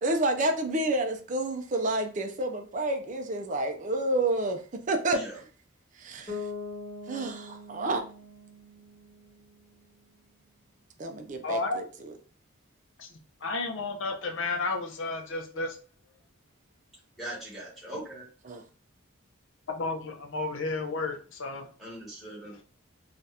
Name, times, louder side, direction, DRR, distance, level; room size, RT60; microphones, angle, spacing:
voice 1, 0.0-5.2 6.0-6.5 7.1-8.0 11.0-12.1 18.4-18.6, right 2 dB, 35° right, 5 dB, 0.4 m, -29 dB
Bass guitar, 6.3-10.1, left 3 dB, 25° left, 1.3 m, -42 dB
voice 2, 11.4-11.8 13.0-13.1 13.4-15.8 19.7-21.7, left 3 dB, 60° left, 3 dB, 0.6 m, -32 dB
voice 3, 17.2-18.2 21.8-22.6, right 1 dB, ahead, -6 dB, 1.2 m, -40 dB
2.8 x 2.4 x 3.2 m, 0.39 s
head